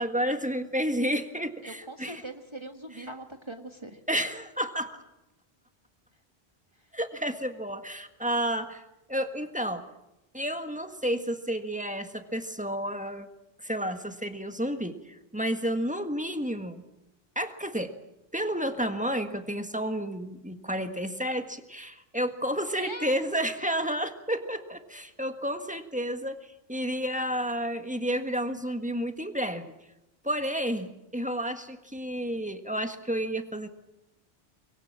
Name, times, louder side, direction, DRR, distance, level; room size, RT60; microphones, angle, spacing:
voice 1, 0.0-2.2 4.1-5.0 6.9-8.8 9.1-9.8 10.3-13.3 13.6-16.8 17.4-17.9 18.3-26.4 26.7-29.7 30.2-33.7, equal, 5° right, 7 dB, 1.7 m, -31 dB
voice 2, 1.6-4.0 22.8-23.1, right 1 dB, 25° right, 5 dB, 1.6 m, -41 dB
25.0 x 22.0 x 7.6 m, 0.91 s
omnidirectional pair, 1.0 m